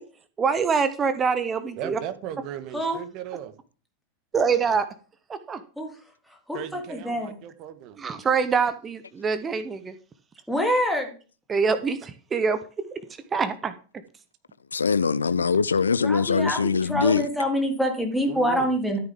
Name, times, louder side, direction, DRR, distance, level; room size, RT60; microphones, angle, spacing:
voice 1, 0.4-2.0 4.3-4.9 5.5-5.6 8.0-9.9 11.5-12.6 13.3-13.7, right 5 dB, 20° right, 1.0 m, -24 dB
voice 2, 1.8-3.5 6.5-8.0 18.3-18.7, right 10 dB, 40° right, 1.6 m, -37 dB
voice 3, 6.5-7.3 10.5-11.1 16.0-19.0, equal, ahead, 3.2 m, -26 dB
voice 4, 14.7-17.3, left 5 dB, 75° left, 0.5 m, -22 dB
13.5 x 9.1 x 3.7 m
figure-of-eight pair, 90°, 0 cm